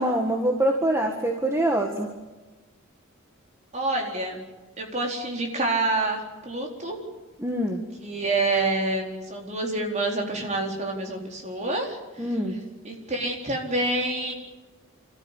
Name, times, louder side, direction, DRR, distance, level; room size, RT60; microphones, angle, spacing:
voice 1, 0.0-2.1 7.4-7.8 12.2-12.5, right 1 dB, 15° right, 1 dB, 1.8 m, -24 dB
voice 2, 3.7-4.4 4.8-7.0 8.0-12.6 12.8-14.3, right 2 dB, 35° right, 1 dB, 4.2 m, -27 dB
29.0 x 14.0 x 10.0 m, 1.2 s
head